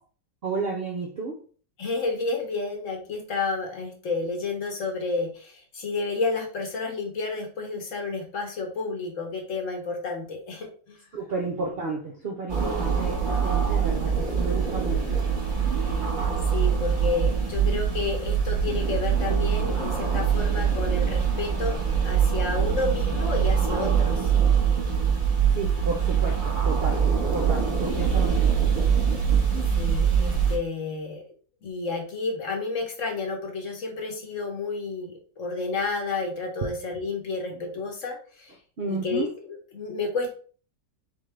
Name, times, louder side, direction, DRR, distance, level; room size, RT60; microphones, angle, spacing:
voice 1, 0.4-1.4 11.1-15.1 25.5-27.1 27.3-28.6 38.8-39.3, right 3 dB, 60° right, 0.6 m, -32 dB
voice 2, 1.8-11.0 16.5-21.8 22.0-24.3 29.8-31.2 31.6-38.5 38.9-40.3, left 3 dB, 55° left, 1.1 m, -31 dB
sound 1, 12.5-30.6, right 7 dB, 30° right, 1.2 m, -23 dB
3.7 x 3.5 x 3.3 m
omnidirectional pair, 1.8 m